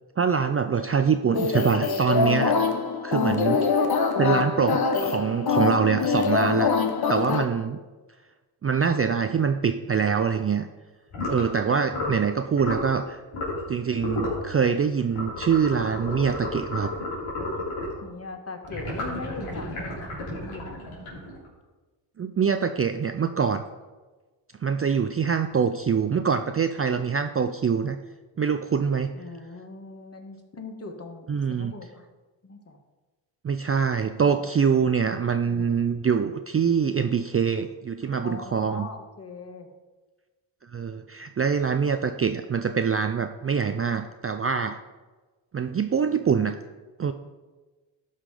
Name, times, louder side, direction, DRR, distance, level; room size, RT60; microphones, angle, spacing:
voice 1, 0.2-2.6 3.0-3.6 4.2-6.7 7.1-7.8 8.6-10.7 11.3-13.2 13.7-16.9 22.2-23.6 24.6-28.0 28.4-29.1 31.3-31.7 33.4-38.9 40.6-44.8 45.5-46.5 47.0-47.1, right 6 dB, 30° right, 8 dB, 0.4 m, -24 dB
sound 1, 1.3-7.5, left 5 dB, 50° left, 1.0 m, -24 dB
voice 2, 6.5-6.9 18.0-20.1 20.4-20.9 29.2-32.0 32.4-32.8 34.3-34.5 35.5-35.7 38.0-39.7, left 3 dB, 30° left, 4 dB, 1.6 m, -40 dB
sound 2, 11.1-11.5 11.9-12.2 12.6-12.9 13.3-13.7 14.0-14.4 15.1-18.0 18.6-21.5, left 2 dB, 85° left, 3.4 m, -32 dB
12.0 x 5.7 x 5.0 m, 1.3 s
cardioid pair, 75°, 49 cm